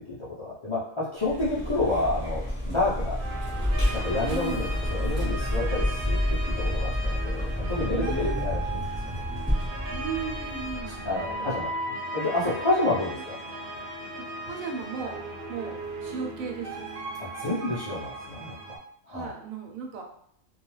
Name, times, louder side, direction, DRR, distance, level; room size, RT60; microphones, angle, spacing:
voice 1, 0.1-2.4 2.7-3.2 3.9-6.2 6.6-9.2 11.0-13.4 17.2-18.5 19.1-19.3, left 2 dB, 40° left, -8 dB, 0.4 m, -29 dB
Vehicle, 1.2-11.5, left 1 dB, 10° right, 0.8 m, -29 dB
sound 1, 3.2-18.8, right 1 dB, 60° right, 0.5 m, -37 dB
voice 2, 4.3-4.7 7.8-8.5 9.9-11.6 13.0-13.2 14.1-15.2 15.5-16.9 19.1-20.0, right 5 dB, 85° right, 2 dB, 1.0 m, -36 dB
2.3 x 2.3 x 3.1 m, 0.67 s
omnidirectional pair, 1.4 m